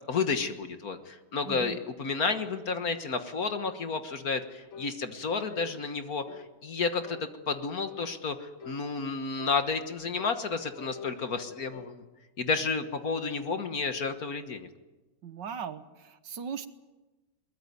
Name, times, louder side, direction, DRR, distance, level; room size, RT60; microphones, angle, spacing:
voice 1, 0.1-12.0 12.4-14.7, left 4 dB, 50° left, 8 dB, 1.7 m, -31 dB
voice 2, 1.5-1.8 15.2-16.7, right 7 dB, 65° right, 11 dB, 1.7 m, -38 dB
sound 1, 4.7-5.0 5.5-5.7 6.3-6.5 7.0-7.3 7.8-8.1 8.6-8.9 9.4-9.6 10.2-12.0, left 7 dB, 70° left, 2.4 m, -45 dB
22.5 x 21.0 x 9.4 m, 1.1 s
omnidirectional pair, 2.2 m